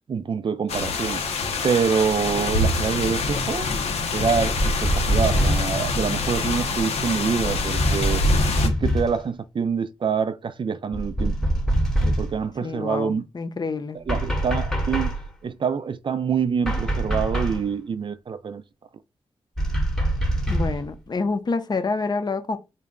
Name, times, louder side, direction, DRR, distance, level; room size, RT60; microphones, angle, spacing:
voice 1, 0.1-1.2 1.6-3.7 4.1-8.2 8.6-11.4 12.0-13.2 14.1-15.1 15.4-18.6, right 6 dB, 50° right, 0.4 m, -26 dB
sound 1, 0.7-8.7, left 2 dB, 80° left, 0.7 m, -25 dB
sound 2, 4.3-5.8 7.8-9.2 10.9-12.4 14.1-15.3 16.6-17.7 19.6-20.9, right 1 dB, 5° left, 0.9 m, -24 dB
voice 2, 12.6-14.0 20.5-22.6, left 4 dB, 40° left, 0.6 m, -27 dB
3.9 x 2.2 x 3.6 m
wide cardioid pair, 85°, 11 cm